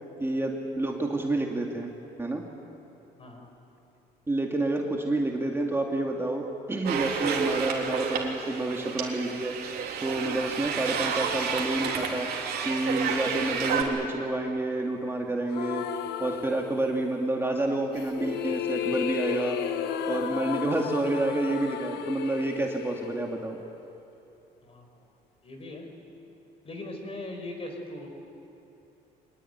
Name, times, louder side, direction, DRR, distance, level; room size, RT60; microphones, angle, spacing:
voice 1, 0.2-1.9 2.2-2.4 4.3-9.5 10.0-12.3 12.6-15.9 16.2-19.6 20.1-23.6, right 2 dB, 15° right, 1 dB, 2.3 m, -29 dB
voice 2, 3.2-3.5 24.6-24.9 25.4-25.9 26.6-28.1, left 1 dB, 35° left, 4 dB, 5.3 m, -39 dB
sound 1, 6.8-13.8, right 6 dB, 70° right, 3.5 m, -31 dB
sound 2, 15.5-17.2 17.9-24.0, left 9 dB, 80° left, 1.3 m, -34 dB
24.5 x 20.0 x 9.5 m, 2.8 s
cardioid pair, 110°, 17 cm